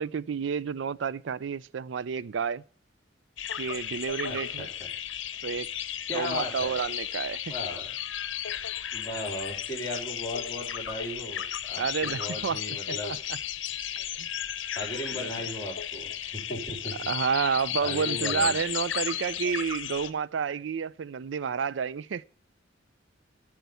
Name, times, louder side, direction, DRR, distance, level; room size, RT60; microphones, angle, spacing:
voice 1, 0.0-2.6 3.6-4.7 5.4-5.7 6.1-7.4 11.8-12.6 12.9-13.4 14.2-14.3 15.1-15.4 17.1-22.2, right 6 dB, 75° right, 0.4 m, -30 dB
sound 1, 3.4-20.1, left 10 dB, 85° left, 0.8 m, -34 dB
voice 2, 4.3-4.9 6.1-6.8 7.5-7.9 8.9-13.1 14.7-16.9 17.8-18.6, left 1 dB, 20° left, 3.7 m, -37 dB
13.5 x 4.6 x 6.8 m
head